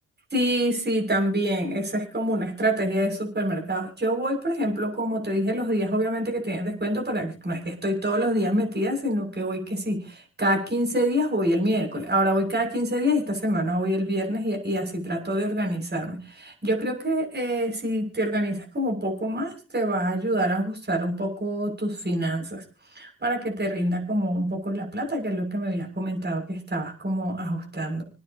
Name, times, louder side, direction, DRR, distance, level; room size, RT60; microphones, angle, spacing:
voice 1, 0.3-22.6 22.9-28.0, equal, 30° right, 1 dB, 6.9 m, -26 dB
27.5 x 9.7 x 3.0 m, 0.33 s
supercardioid pair, 60°, 34 cm